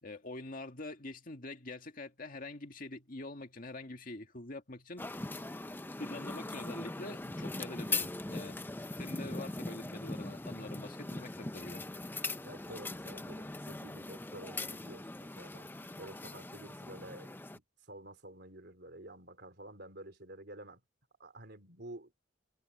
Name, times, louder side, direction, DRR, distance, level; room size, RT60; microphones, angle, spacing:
voice 1, 0.0-5.2 6.0-8.6 8.9-11.8, left 2 dB, 45° left, 2.1 m, -45 dB
sound 1, 5.0-17.6, left 2 dB, 10° left, 0.6 m, -41 dB
voice 2, 12.4-15.7 16.0-20.8 21.2-22.1, right 1 dB, 60° right, 3.8 m, -50 dB
head